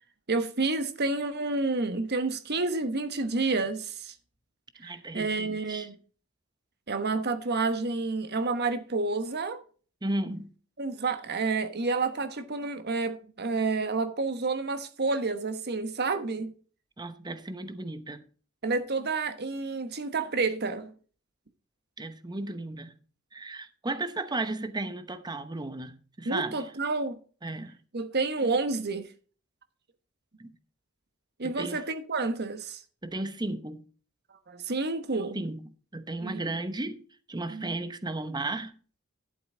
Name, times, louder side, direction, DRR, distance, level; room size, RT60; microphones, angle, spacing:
voice 1, 0.3-4.1 4.8-6.0 6.9-9.6 10.8-16.5 18.6-20.9 26.2-27.2 27.9-29.1 31.4-32.8 34.5-35.4 36.2-36.5 37.5-37.7, right 3 dB, 50° right, 1.2 m, -29 dB
voice 2, 4.8-5.9 10.0-10.5 17.0-18.2 22.0-22.9 23.3-26.5 27.4-27.8 30.4-30.5 31.4-31.8 33.0-33.8 35.3-35.6 35.9-37.0 37.3-38.7, right 2 dB, 20° right, 0.9 m, -34 dB
12.0 x 7.8 x 3.8 m
head